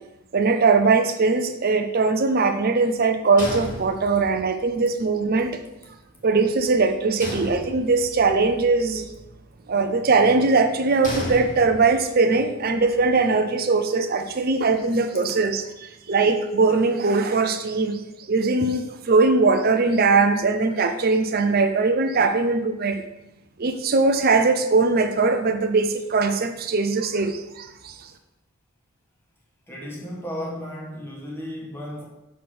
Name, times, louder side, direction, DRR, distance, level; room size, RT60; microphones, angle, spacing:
voice 1, 0.3-5.5 6.2-9.1 9.7-15.6 16.1-18.0 18.3-23.0 23.6-27.7, right 3 dB, 45° right, 7 dB, 0.6 m, -20 dB
sound 1, 3.4-4.5 7.2-8.2 11.0-12.1, left 1 dB, 35° left, 1.4 m, -33 dB
voice 2, 29.7-32.1, equal, 10° left, -3 dB, 1.3 m, -34 dB
6.3 x 3.7 x 6.0 m, 0.96 s
head